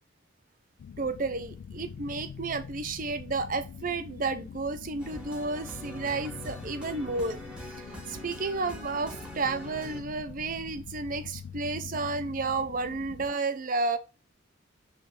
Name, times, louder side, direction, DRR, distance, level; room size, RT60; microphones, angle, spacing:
sound 1, 0.8-13.3, left 7 dB, 65° left, 0.3 m, -44 dB
voice 1, 1.0-7.4 8.1-14.0, right 3 dB, 40° right, 0.6 m, -32 dB
sound 2, 5.0-10.0, equal, 5° right, 1.2 m, -44 dB
6.3 x 3.2 x 4.9 m
head